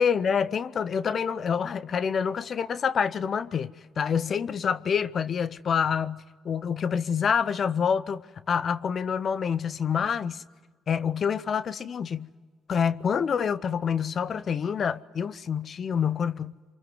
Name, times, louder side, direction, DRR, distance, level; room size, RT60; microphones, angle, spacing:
voice 1, 0.0-10.4 10.9-12.3 12.7-16.5, left 7 dB, 50° left, 0.8 m, -27 dB
27.5 x 24.5 x 8.0 m
hypercardioid pair, 55°, 0 cm